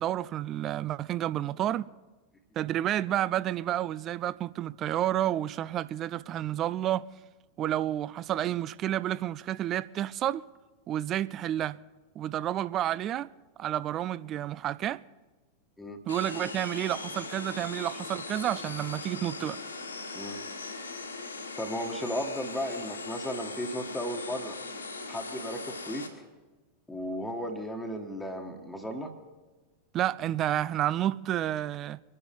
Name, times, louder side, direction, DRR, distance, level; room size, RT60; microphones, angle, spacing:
voice 1, 0.0-1.9 2.6-7.1 7.6-10.4 10.9-11.8 12.2-13.3 13.6-15.0 16.1-19.6 29.9-32.0, right 12 dB, 30° right, 0.4 m, -30 dB
sound 1, 16.1-26.1, left 3 dB, 75° left, 2.3 m, -39 dB
voice 2, 21.6-24.6 25.1-26.1 26.9-29.1, equal, 5° left, 1.5 m, -35 dB
24.0 x 9.8 x 5.3 m
figure-of-eight pair, 90°, 0 cm